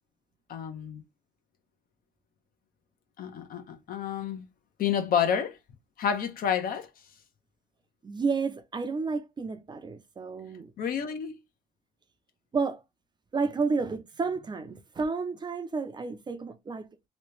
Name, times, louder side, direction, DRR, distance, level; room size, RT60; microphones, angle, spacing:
voice 1, 0.5-1.0 3.2-4.4 4.8-5.6 6.0-6.9 10.8-11.4, left 8 dB, 60° left, 0.9 m, -29 dB
voice 2, 8.0-10.7 12.5-12.8 13.3-16.9, right 4 dB, 25° right, 0.6 m, -31 dB
3.1 x 2.9 x 3.2 m
cardioid pair, 110°, 17 cm